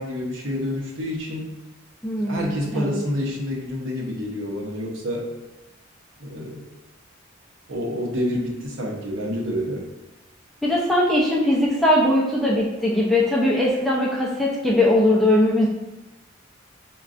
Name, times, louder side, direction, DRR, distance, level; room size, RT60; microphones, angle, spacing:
voice 1, 0.0-1.5 2.2-5.3 6.2-6.6 7.7-9.8, equal, 65° right, -2 dB, 0.8 m, -28 dB
voice 2, 2.0-3.0 10.6-15.7, left 1 dB, ahead, -5 dB, 0.4 m, -20 dB
5.1 x 2.3 x 2.4 m, 1.0 s
head